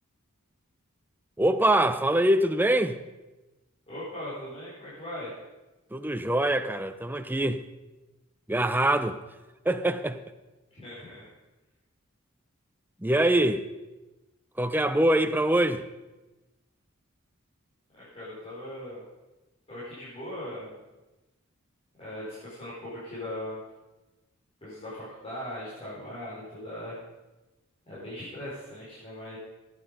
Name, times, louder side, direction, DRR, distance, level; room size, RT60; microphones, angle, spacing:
voice 1, 1.4-3.0 5.9-7.6 8.5-9.2 9.6-10.2 13.0-13.6 14.6-15.8, right 1 dB, 10° right, 0.6 m, -24 dB
voice 2, 3.9-5.3 10.7-11.3 17.9-19.0 19.7-20.8 22.0-23.6 24.6-26.9 27.9-29.4, left 1 dB, 25° left, 4.7 m, -39 dB
16.0 x 9.9 x 5.3 m
head